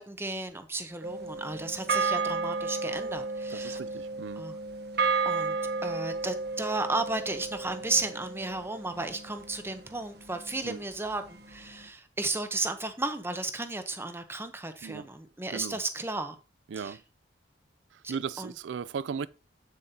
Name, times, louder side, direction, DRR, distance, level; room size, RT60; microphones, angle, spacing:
voice 1, 0.0-3.8 4.4-4.6 5.2-5.5 5.8-16.3 16.8-17.0 18.4-18.5, right 2 dB, 15° right, 0.8 m, -34 dB
sound 1, 1.0-9.5, right 4 dB, 60° right, 1.0 m, -32 dB
voice 2, 3.5-4.4 10.6-10.8 14.8-15.1 15.5-15.8 16.7-17.0 18.1-19.3, right 6 dB, 75° right, 0.4 m, -36 dB
8.5 x 7.4 x 2.8 m
head